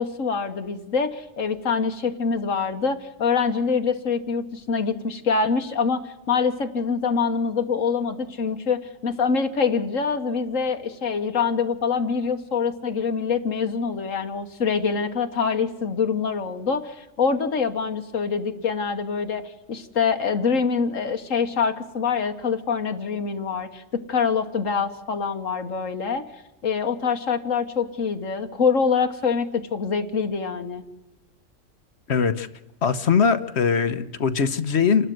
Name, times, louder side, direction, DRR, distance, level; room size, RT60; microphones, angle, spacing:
voice 1, 0.0-6.0 6.3-26.2 26.6-30.8, left 5 dB, 90° left, 7 dB, 1.8 m, -25 dB
voice 2, 32.1-32.5 32.8-35.1, left 6 dB, 60° left, 12 dB, 1.2 m, -21 dB
28.5 x 12.5 x 7.8 m, 1.0 s
omnidirectional pair, 1.3 m